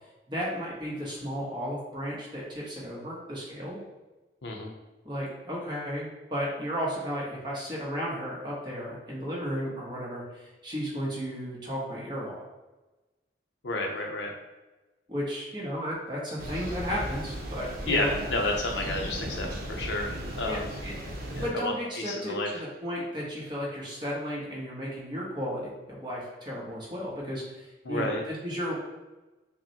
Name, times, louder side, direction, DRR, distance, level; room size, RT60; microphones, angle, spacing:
voice 1, 0.3-3.8 5.0-12.4 15.1-18.1 20.4-28.7, equal, 25° right, -5 dB, 1.0 m, -34 dB
voice 2, 4.4-4.7 13.6-14.3 17.9-20.7 21.3-21.7 22.1-22.5 27.8-28.2, left 2 dB, 70° left, 1 dB, 0.6 m, -30 dB
Thunder, 16.4-21.5, right 1 dB, 55° right, 0.7 m, -36 dB
5.8 x 2.1 x 2.8 m, 1.1 s
head